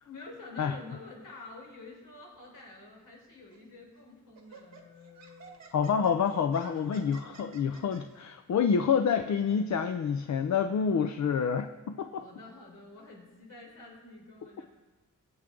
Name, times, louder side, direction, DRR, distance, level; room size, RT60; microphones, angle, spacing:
voice 1, 0.0-5.7 12.2-14.6, left 3 dB, 80° left, -2 dB, 4.2 m, -49 dB
Laughter, 3.5-3.7 4.3-8.0, right 5 dB, 60° right, 1.6 m, -52 dB
voice 2, 5.7-12.2, left 6 dB, 60° left, 8 dB, 0.6 m, -28 dB
23.0 x 8.0 x 3.8 m, 1.3 s
wide cardioid pair, 180°, 31 cm